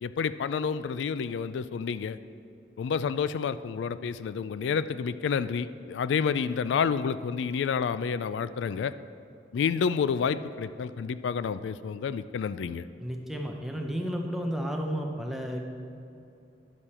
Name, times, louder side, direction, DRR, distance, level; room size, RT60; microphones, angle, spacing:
voice 1, 0.0-2.2 2.8-8.9 9.5-12.9, left 6 dB, 80° left, 14 dB, 0.3 m, -29 dB
voice 2, 13.0-15.7, equal, ahead, 1 dB, 0.7 m, -32 dB
10.5 x 6.8 x 4.3 m, 2.6 s
head